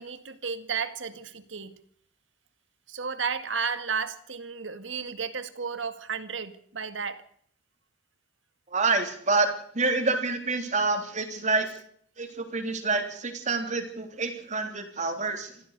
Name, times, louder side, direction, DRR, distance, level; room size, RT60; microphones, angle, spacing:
voice 1, 0.0-1.8 2.9-7.2, right 5 dB, 85° right, 1.9 m, -33 dB
voice 2, 8.7-9.5 9.7-11.7 12.2-15.5, right 3 dB, 40° right, 3.4 m, -27 dB
26.5 x 15.0 x 6.7 m
head